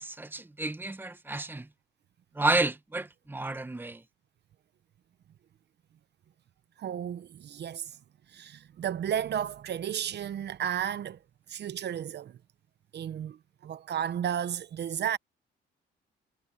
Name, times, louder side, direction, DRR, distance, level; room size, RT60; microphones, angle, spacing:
voice 1, 0.0-1.7 2.3-4.0, right 2 dB, 10° right, 1.0 m, -31 dB
voice 2, 6.8-8.0 8.3-11.2 11.5-12.4 12.9-15.2, right 9 dB, 60° right, 0.9 m, -33 dB
cardioid pair, 90°, 20 cm